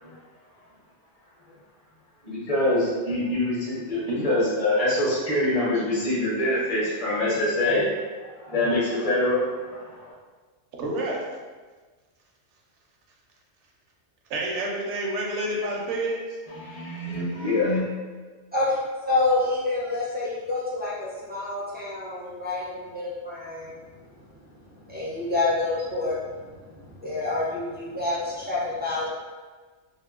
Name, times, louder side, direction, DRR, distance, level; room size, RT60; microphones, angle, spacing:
voice 1, 2.2-7.9 8.4-10.1 16.6-17.9, left 1 dB, 35° left, -7 dB, 0.7 m, -25 dB
voice 2, 10.8-11.2 14.3-16.4, right 1 dB, 75° right, -1 dB, 0.9 m, -28 dB
voice 3, 18.5-23.8 24.9-29.1, left 2 dB, 15° right, -9 dB, 0.3 m, -28 dB
2.8 x 2.1 x 2.3 m, 1.4 s
omnidirectional pair, 1.2 m